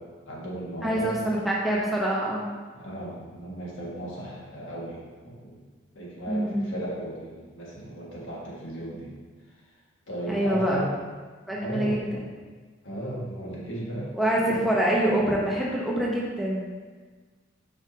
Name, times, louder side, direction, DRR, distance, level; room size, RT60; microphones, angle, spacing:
voice 1, 0.0-1.2 2.7-5.6 5.9-9.1 10.1-10.9 11.5-12.0 12.8-14.7, right 1 dB, 85° left, -5 dB, 1.8 m, -36 dB
voice 2, 0.8-2.5 6.3-6.8 10.3-10.8 11.5-12.2 14.1-16.7, right 1 dB, ahead, -5 dB, 0.8 m, -25 dB
7.1 x 5.2 x 2.8 m, 1.4 s
head